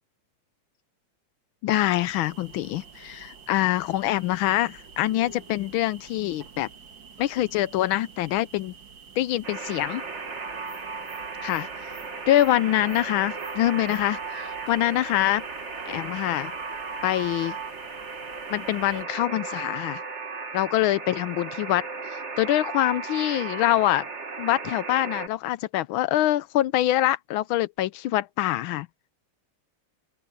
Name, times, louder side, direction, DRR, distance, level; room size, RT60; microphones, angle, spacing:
voice 1, 1.6-6.7 7.2-8.7 9.2-10.0 11.4-11.9 12.3-15.4 15.9-16.5 17.0-17.5 18.5-20.0 20.5-24.1 24.4-28.9, left 14 dB, 80° left, 1.4 m, -25 dB
sound 1, 1.7-19.0, right 6 dB, 60° right, 2.2 m, -48 dB
Alarm, 9.4-25.3, right 4 dB, 35° right, 2.0 m, -36 dB
open air
omnidirectional pair, 2.3 m